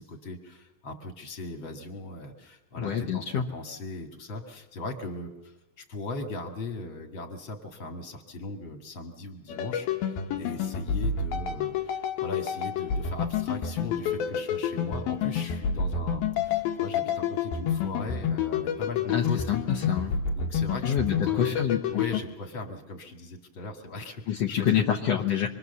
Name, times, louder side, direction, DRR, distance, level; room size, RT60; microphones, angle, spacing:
voice 1, 0.0-3.2 3.5-19.4 20.4-25.2, left 2 dB, 40° left, 4 dB, 2.6 m, -38 dB
voice 2, 2.8-3.5 19.1-20.2 20.8-22.0 24.3-25.5, left 9 dB, 65° left, 1 dB, 1.7 m, -27 dB
sound 1, 9.5-22.2, left 7 dB, 85° left, 3.0 m, -29 dB
26.5 x 22.0 x 6.9 m, 0.97 s
omnidirectional pair, 4.1 m